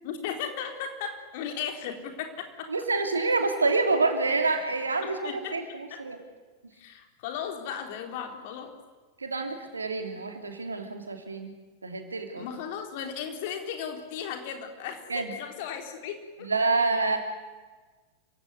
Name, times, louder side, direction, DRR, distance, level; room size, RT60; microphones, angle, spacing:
voice 1, 0.0-2.7 5.0-6.0 6.7-8.7 12.4-16.5, left 7 dB, 50° left, 5 dB, 3.9 m, -36 dB
voice 2, 2.7-6.2 9.2-11.5 11.8-12.5 15.1-15.3 16.4-17.2, right 3 dB, 75° right, 5 dB, 3.2 m, -27 dB
27.5 x 16.5 x 9.7 m, 1.3 s
figure-of-eight pair, 90°, 0 cm